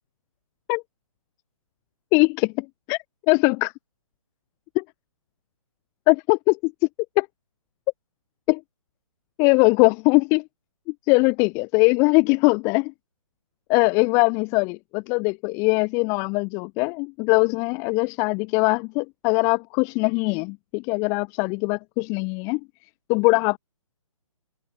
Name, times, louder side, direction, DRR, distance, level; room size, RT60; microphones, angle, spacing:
voice 1, 2.1-3.0 3.3-3.7 4.8-4.9 6.1-6.7 7.2-7.3 8.5-8.6 9.4-10.4 11.1-12.9 13.7-22.6 23.1-23.6, left 31 dB, 15° left, 0.6 m, -21 dB
figure-of-eight pair, 140°, 18 cm